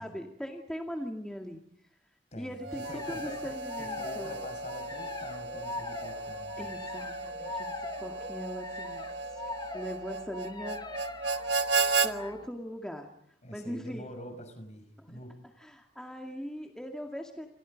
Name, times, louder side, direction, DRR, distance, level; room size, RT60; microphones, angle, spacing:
voice 1, 0.0-1.6 2.3-4.4 6.6-9.4 9.7-10.8 12.0-13.1 13.5-14.1 15.0-15.2 15.6-17.5, equal, 5° left, 2 dB, 2.2 m, -40 dB
voice 2, 2.3-3.4 3.8-6.6 13.4-15.3, left 1 dB, 40° left, 8 dB, 5.8 m, -45 dB
Harmonica, 2.6-12.1, right 3 dB, 75° right, 1.5 m, -34 dB
sound 1, 2.8-12.5, left 3 dB, 25° left, 1.3 m, -43 dB
28.5 x 28.5 x 5.3 m, 0.70 s
head